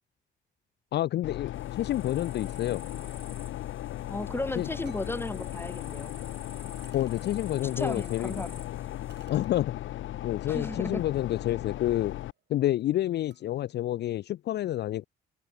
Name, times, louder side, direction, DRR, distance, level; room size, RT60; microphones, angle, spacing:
voice 1, 0.9-2.9 4.6-4.7 6.9-8.4 9.3-9.7 10.2-12.2 12.5-15.0, left 13 dB, 60° left, 0.4 m, -29 dB
sound 1, 1.2-12.3, left 14 dB, 75° left, 1.1 m, -37 dB
sound 2, 1.5-9.3, right 1 dB, 10° right, 5.8 m, -53 dB
voice 2, 4.1-6.1 7.8-8.6 10.5-11.0, left 2 dB, 10° left, 2.1 m, -34 dB
sound 3, 4.8-5.2 6.1-6.2 6.8-7.3 9.1-9.6 10.4-10.6 11.0-13.6, right 9 dB, 60° right, 7.1 m, -62 dB
open air
cardioid pair, 90°, 20 cm